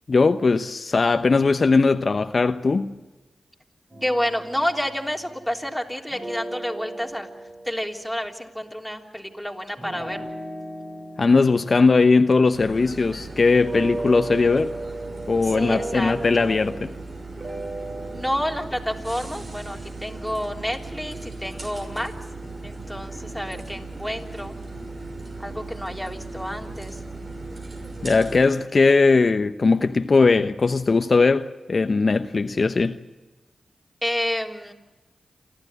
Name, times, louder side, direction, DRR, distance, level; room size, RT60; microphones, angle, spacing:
voice 1, 0.1-2.9 11.2-14.7 15.3-16.9 28.0-33.0, left 4 dB, 55° left, 0.8 m, -19 dB
sound 1, 3.9-5.7 6.1-8.6 9.8-13.1 13.6-17.0 17.4-18.7, right 2 dB, 35° right, 8.0 m, -35 dB
voice 2, 4.0-7.3 7.6-10.2 15.4-16.5 18.1-22.2 22.6-24.6 25.4-27.0 34.0-34.7, equal, ahead, 3.5 m, -29 dB
sound 2, 12.5-28.4, right 2 dB, 55° right, 6.2 m, -37 dB
28.0 x 13.0 x 9.8 m
cardioid pair, 40°, 0 cm